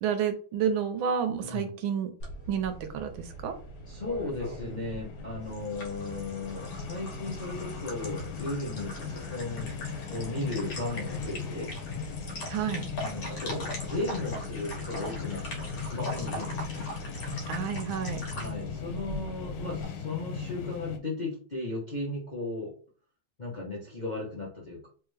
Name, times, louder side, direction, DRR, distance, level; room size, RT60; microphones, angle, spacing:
voice 1, 0.0-2.1 2.5-3.6 12.5-12.9 17.5-18.2, right 7 dB, 75° right, 8 dB, 1.4 m, -30 dB
voice 2, 1.4-1.8 3.9-9.8 10.1-11.7 13.0-16.9 18.3-22.7 23.4-24.9, left 2 dB, 35° left, -4 dB, 0.7 m, -36 dB
sound 1, 2.2-19.8, right 1 dB, 60° left, 1.7 m, -41 dB
sound 2, 3.2-21.0, left 6 dB, 90° left, 1.5 m, -39 dB
3.4 x 3.3 x 3.2 m, 0.42 s
omnidirectional pair, 2.3 m